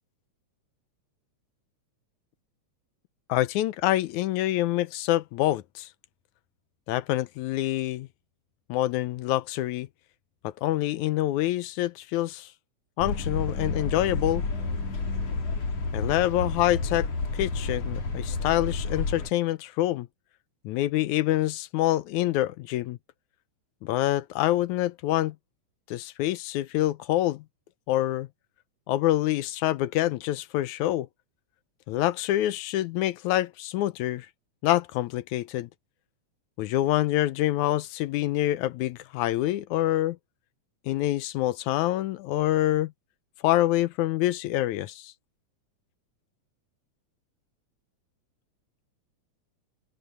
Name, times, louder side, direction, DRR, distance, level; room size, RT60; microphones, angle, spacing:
voice 1, 3.3-5.9 6.9-8.1 8.7-9.9 10.4-12.5 13.0-14.4 15.9-17.1 17.4-20.1 20.6-23.0 23.8-25.4 25.9-27.4 27.9-28.3 28.9-31.1 31.9-34.3 34.6-35.7 36.6-40.2 40.9-42.9 43.4-45.1, left 15 dB, 80° left, 2.0 m, -26 dB
sound 1, 13.0-19.3, left 3 dB, 55° left, 4.6 m, -30 dB
open air
omnidirectional pair, 3.5 m